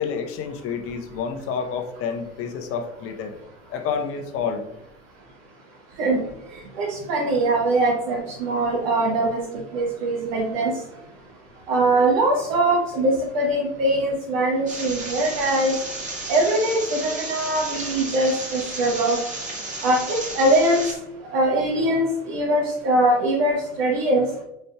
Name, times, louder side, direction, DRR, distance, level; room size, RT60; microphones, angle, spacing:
voice 1, 0.0-3.4 3.7-4.7, left 6 dB, 40° left, 5 dB, 0.8 m, -29 dB
voice 2, 6.8-10.7 11.7-15.7 16.3-19.2 19.8-20.8 21.3-24.3, right 1 dB, 55° right, -2 dB, 1.0 m, -22 dB
sound 1, 14.7-20.9, right 2 dB, 20° right, 1.6 m, -33 dB
5.2 x 4.3 x 2.3 m, 0.84 s
figure-of-eight pair, 80°, 36 cm